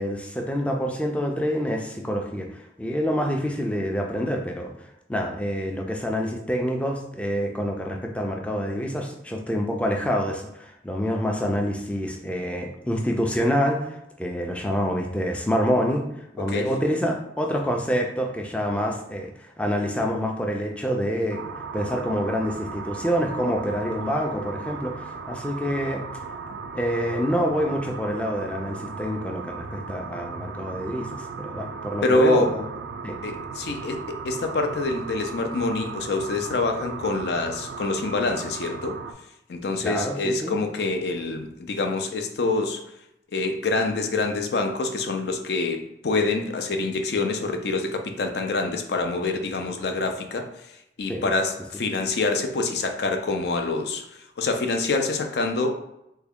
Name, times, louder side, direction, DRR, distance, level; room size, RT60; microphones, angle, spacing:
voice 1, 0.0-21.4 21.7-26.0 26.7-32.6 33.0-33.2 39.8-40.6 51.1-51.3, equal, 5° left, 1 dB, 0.4 m, -27 dB
voice 2, 16.4-16.7 32.0-32.5 33.2-39.0 39.5-42.8 43.3-50.5 51.0-54.0 54.4-55.7, left 3 dB, 65° left, 5 dB, 0.4 m, -26 dB
sound 1, 21.3-39.1, right 5 dB, 85° right, 0.3 m, -36 dB
3.4 x 2.2 x 3.5 m, 0.84 s
head